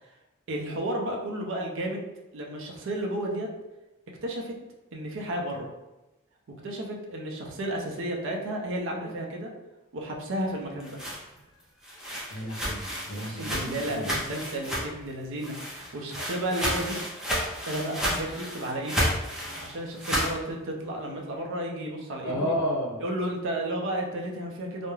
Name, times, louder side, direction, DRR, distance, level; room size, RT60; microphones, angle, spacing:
voice 1, 0.5-2.1 2.3-3.5 4.2-4.5 4.9-5.7 6.6-9.5 9.9-11.0 13.3-17.0 17.7-19.1 19.6-22.5 23.0-24.9, right 1 dB, 60° right, 0 dB, 0.5 m, -32 dB
sound 1, 10.6-15.1 15.4-20.4, equal, 5° right, 0.4 m, -31 dB
voice 2, 12.3-14.2 22.2-23.0, equal, 65° left, -5 dB, 0.5 m, -32 dB
2.3 x 2.0 x 3.0 m, 1.0 s
head